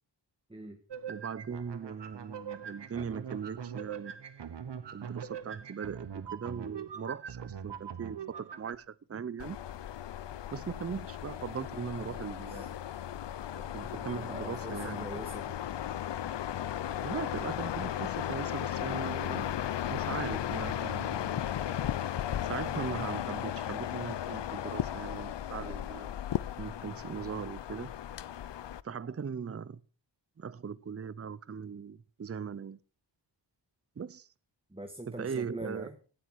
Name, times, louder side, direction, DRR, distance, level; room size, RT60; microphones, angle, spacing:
sound 1, 0.9-8.8, right 8 dB, 65° right, 1.2 m, -42 dB
voice 1, 1.1-4.2 4.9-9.6 10.5-12.8 13.7-15.1 17.0-19.5 19.9-21.4 22.4-26.1 26.6-28.0 28.8-29.8 30.4-32.8 34.0-34.3 35.1-35.9, right 6 dB, 30° right, 0.6 m, -39 dB
sound 2, 9.4-28.8, left 11 dB, 65° left, 0.6 m, -36 dB
voice 2, 14.0-15.6 25.6-25.8 34.7-36.0, right 1 dB, 10° right, 1.6 m, -44 dB
sound 3, 17.6-25.8, left 4 dB, 85° left, 4.0 m, -69 dB
18.5 x 12.0 x 4.6 m
wide cardioid pair, 85°, 45 cm